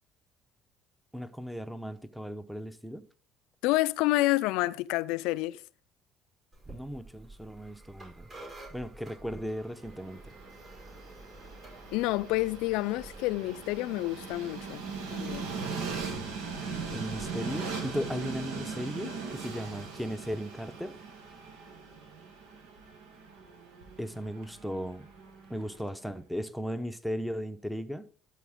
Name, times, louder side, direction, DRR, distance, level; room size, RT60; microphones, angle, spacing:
voice 1, 1.1-3.1 6.7-8.3 8.7-10.3 16.9-20.9 24.0-25.1 25.5-28.1, equal, ahead, 0.8 m, -36 dB
voice 2, 3.6-5.6 11.9-14.8 15.1-15.5, left 19 dB, 85° left, 0.3 m, -28 dB
sound 1, 6.5-17.2, right 2 dB, 35° right, 4.5 m, -51 dB
Train, 9.9-25.9, right 4 dB, 85° right, 1.5 m, -40 dB
12.5 x 4.3 x 3.6 m
supercardioid pair, 80°, 0 cm